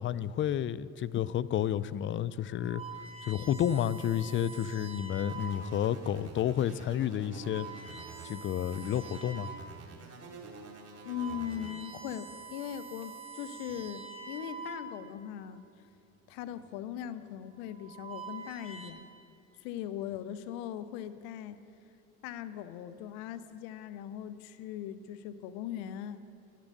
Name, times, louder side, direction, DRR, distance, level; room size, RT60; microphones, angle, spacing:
voice 1, 0.0-2.8 3.2-7.7 8.2-9.5, left 10 dB, 30° left, 17 dB, 0.4 m, -31 dB
sound 1, 2.4-5.8 6.5-6.7 7.3-9.7 10.2-10.3 10.8-15.3 16.3-16.7 17.6-18.9, right 5 dB, 15° right, 1.7 m, -46 dB
sound 2, 5.3-8.3 8.7-11.7, right 4 dB, 35° right, 2.9 m, -48 dB
voice 2, 11.0-15.6 16.3-19.1 19.6-21.6 22.2-26.2, left 10 dB, 70° left, 14 dB, 0.8 m, -40 dB
11.5 x 10.5 x 6.5 m, 2.7 s
hypercardioid pair, 65°, 41 cm